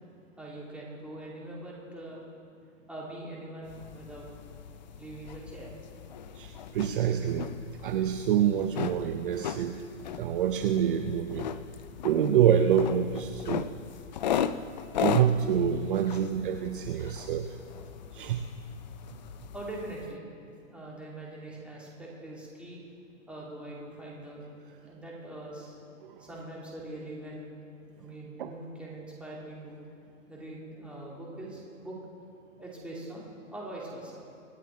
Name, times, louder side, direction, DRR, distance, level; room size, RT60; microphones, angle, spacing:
voice 1, 0.4-2.2 2.9-4.3 5.0-5.7 19.5-20.2 20.7-22.8 23.3-24.4 24.8-25.8 26.2-27.5 28.0-29.8 30.3-32.0 32.6-34.2, right 1 dB, 5° right, -5 dB, 2.6 m, -42 dB
sound 1, 3.7-20.1, left 8 dB, 35° left, 0.4 m, -37 dB
voice 2, 6.3-7.5 7.8-9.8 10.2-11.5 12.0-13.7 15.0-17.6 18.1-18.5 26.0-26.3 28.4-28.5, right 9 dB, 40° right, 7 dB, 0.7 m, -26 dB
26.0 x 9.0 x 4.5 m, 2.6 s
hypercardioid pair, 150°, 40 cm